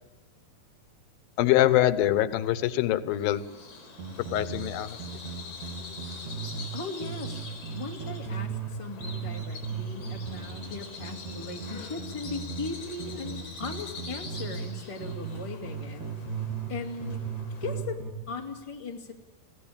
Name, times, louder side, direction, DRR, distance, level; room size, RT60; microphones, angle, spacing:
voice 1, 1.4-3.4 4.2-5.0, left 13 dB, 90° left, 15 dB, 2.7 m, -24 dB
Bird vocalization bird call bird song, 3.1-17.9, left 3 dB, 65° left, 5.8 m, -44 dB
sound 1, 4.0-6.7 7.0-8.7 9.0-14.7 15.0-16.7 17.0-18.1, right 6 dB, 55° right, 4.0 m, -36 dB
voice 2, 6.7-16.1 16.7-17.2 17.6-19.1, left 4 dB, 10° left, 1 dB, 2.0 m, -38 dB
21.5 x 16.5 x 8.7 m, 1.2 s
omnidirectional pair, 4.1 m